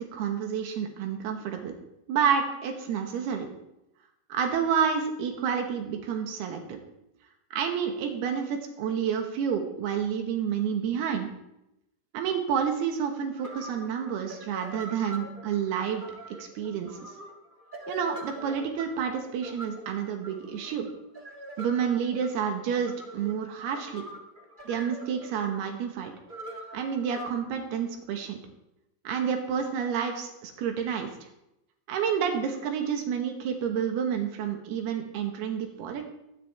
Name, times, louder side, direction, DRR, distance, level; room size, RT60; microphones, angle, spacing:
voice 1, 0.0-1.7 2.1-3.5 4.3-6.8 7.5-11.3 12.1-16.0 16.4-17.1 17.9-20.9 21.6-24.1 24.7-26.1 26.7-28.4 29.1-31.1 31.9-36.1, right 7 dB, 90° right, 4 dB, 3.4 m, -29 dB
sound 1, 13.4-27.3, right 1 dB, 40° right, 0.7 m, -44 dB
22.0 x 10.5 x 3.4 m, 0.86 s
omnidirectional pair, 4.4 m